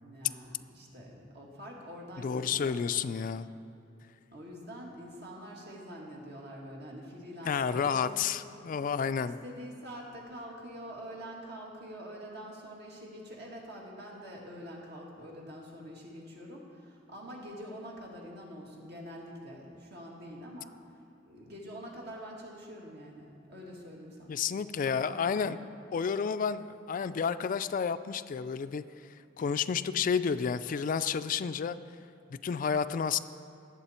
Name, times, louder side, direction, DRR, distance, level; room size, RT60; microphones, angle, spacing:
voice 1, 0.0-2.9 4.3-8.7 9.2-20.8 21.3-24.4 24.8-25.6, equal, 60° right, -2 dB, 2.0 m, -45 dB
voice 2, 2.2-3.5 7.4-9.4 24.3-25.6 25.9-28.8 29.4-31.8 32.3-33.2, left 6 dB, 45° left, 12 dB, 0.3 m, -30 dB
18.0 x 7.6 x 4.3 m, 2.8 s
head